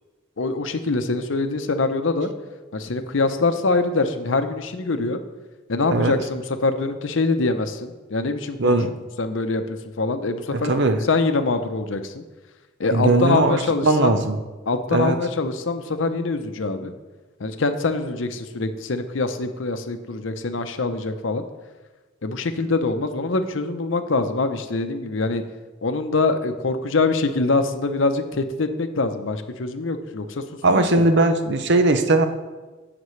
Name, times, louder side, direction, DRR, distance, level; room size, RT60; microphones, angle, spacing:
voice 1, 0.4-2.3 2.7-5.2 5.7-8.8 9.2-10.7 11.1-12.2 12.8-14.1 14.7-16.9 17.4-21.4 22.2-25.4 25.8-30.4 30.7-31.0, left 3 dB, 70° left, 8 dB, 0.7 m, -24 dB
voice 2, 8.6-8.9 10.5-11.0 12.9-14.4 14.9-15.2 30.6-32.3, right 2 dB, 60° right, 8 dB, 0.7 m, -19 dB
16.0 x 5.9 x 3.2 m, 1.3 s
head